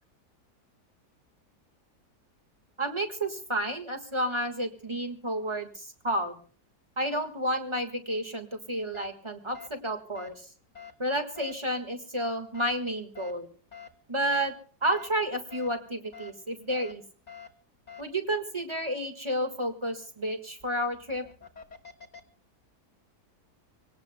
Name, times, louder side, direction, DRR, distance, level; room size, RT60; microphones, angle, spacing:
voice 1, 2.8-6.4 7.0-10.4 11.0-13.5 14.1-14.5 14.8-17.0 18.0-21.2, right 1 dB, 15° right, 5 dB, 1.6 m, -31 dB
sound 1, 8.9-9.1 9.5-9.7 10.1-10.3 10.7-10.9 11.4-11.5 12.5-12.7 13.1-13.3 13.7-13.9 14.3-14.5 14.9-15.1 15.5-15.7 16.1-16.3 16.7-16.9 17.3-17.5 17.9-18.0 20.9-22.2, left 7 dB, 25° left, 1.4 m, -46 dB
26.0 x 18.5 x 2.2 m, 0.40 s
omnidirectional pair, 1.8 m